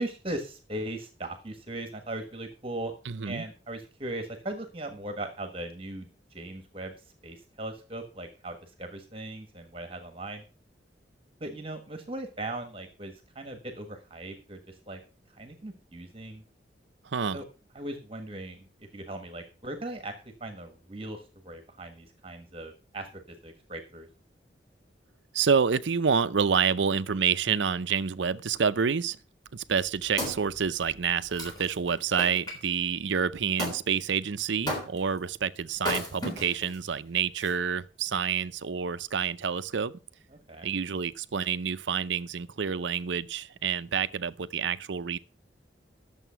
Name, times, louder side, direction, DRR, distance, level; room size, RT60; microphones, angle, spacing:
voice 1, 0.0-2.9 3.2-6.9 7.2-10.4 11.4-15.0 15.3-16.4 17.3-17.4 17.7-24.1 40.5-40.7, right 1 dB, 30° right, 1.4 m, -39 dB
voice 2, 3.1-3.4 17.0-17.4 25.3-29.2 29.5-39.9 40.6-45.2, right 6 dB, 80° right, 0.6 m, -28 dB
Wood, 29.6-32.6 33.6-33.8 34.7-35.2 35.8-36.8 37.4-37.5, left 1 dB, 20° left, 3.6 m, -35 dB
11.0 x 7.1 x 5.7 m
head